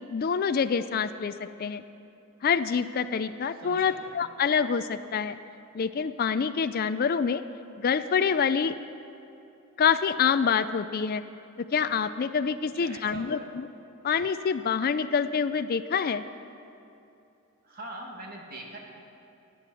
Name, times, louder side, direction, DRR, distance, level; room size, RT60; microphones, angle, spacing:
voice 1, 0.1-1.3 1.6-1.8 2.4-5.4 5.7-7.4 7.8-8.7 9.8-11.2 11.7-13.7 14.0-16.2, left 6 dB, 40° left, 11 dB, 0.4 m, -26 dB
voice 2, 3.6-4.0 12.7-13.5 17.6-18.8, right 2 dB, 40° right, 0 dB, 2.1 m, -42 dB
19.5 x 8.5 x 7.0 m, 2.7 s
head